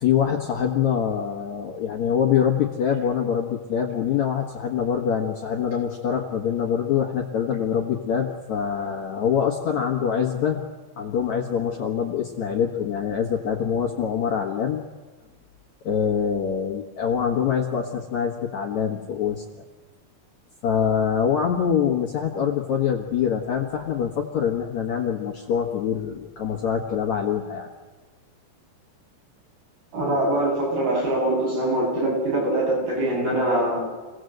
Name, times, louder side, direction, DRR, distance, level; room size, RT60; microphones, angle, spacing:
voice 1, 0.0-10.6 11.0-14.8 15.8-19.4 20.6-27.7, left 8 dB, 55° left, 1 dB, 2.3 m, -24 dB
voice 2, 29.9-33.9, right 1 dB, 60° right, -3 dB, 9.9 m, -23 dB
27.0 x 18.0 x 8.0 m, 1.3 s
omnidirectional pair, 4.8 m